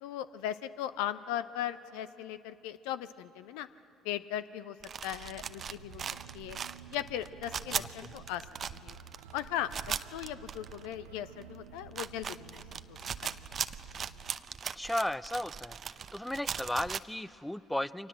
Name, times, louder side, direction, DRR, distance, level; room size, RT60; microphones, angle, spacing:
voice 1, 0.0-3.7 4.0-4.8 5.0-6.0 6.3-6.6 6.9-8.4 8.7-9.0 9.3-9.7 10.1-12.6 13.2-13.4, left 11 dB, 70° left, 13 dB, 0.7 m, -38 dB
sound 1, 4.8-11.1 11.4-11.5 11.8-17.0, right 7 dB, 40° right, 0.7 m, -39 dB
sound 2, 5.2-14.4, right 7 dB, 80° right, 0.7 m, -52 dB
voice 2, 7.7-8.1 14.8-15.8 16.1-18.1, left 1 dB, 5° left, 18 dB, 0.6 m, -35 dB
29.5 x 24.5 x 7.6 m, 2.7 s
figure-of-eight pair, 55°, 0 cm